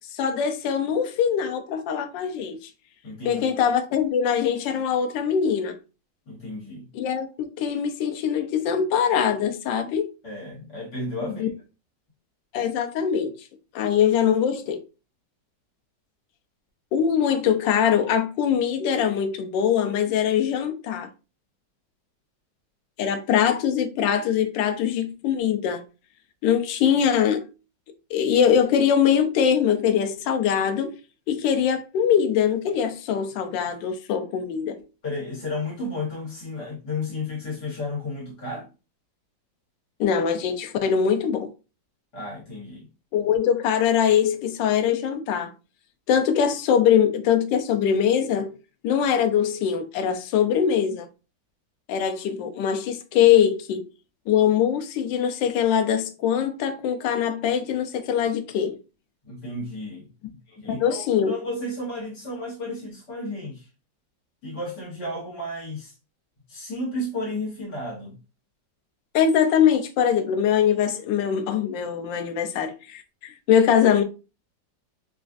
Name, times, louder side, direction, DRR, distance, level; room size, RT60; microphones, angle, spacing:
voice 1, 0.1-2.7 3.2-5.8 6.9-10.1 11.2-11.5 12.5-13.3 13.7-14.8 16.9-21.1 23.0-25.8 26.4-27.4 28.1-30.9 31.3-34.8 40.0-41.5 43.1-45.5 46.1-48.5 48.8-51.1 51.9-53.8 54.3-58.8 60.7-61.3 69.1-74.0, left 8 dB, 85° left, 1.3 m, -22 dB
voice 2, 3.0-3.5 6.3-6.9 10.2-11.5 35.0-38.7 42.1-42.9 59.2-60.1 60.5-63.7 64.4-65.9 66.5-68.2, left 2 dB, 65° left, 1.9 m, -33 dB
4.2 x 2.3 x 2.5 m
omnidirectional pair, 1.9 m